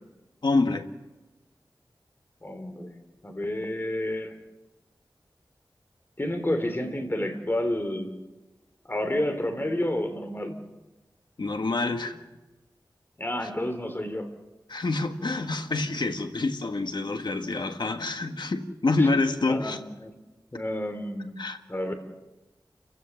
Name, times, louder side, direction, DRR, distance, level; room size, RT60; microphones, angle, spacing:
voice 1, 0.4-0.9 11.4-12.2 13.4-13.5 14.7-19.8 21.4-21.6, left 3 dB, 70° left, 6 dB, 1.6 m, -27 dB
voice 2, 2.4-3.0 3.2-4.4 6.2-8.1 8.8-10.6 13.2-14.3 19.0-19.1 19.5-20.1 20.5-21.3 21.7-21.9, left 1 dB, 25° left, 6 dB, 3.2 m, -30 dB
29.5 x 15.5 x 7.2 m, 1.1 s
wide cardioid pair, 80°, 8 cm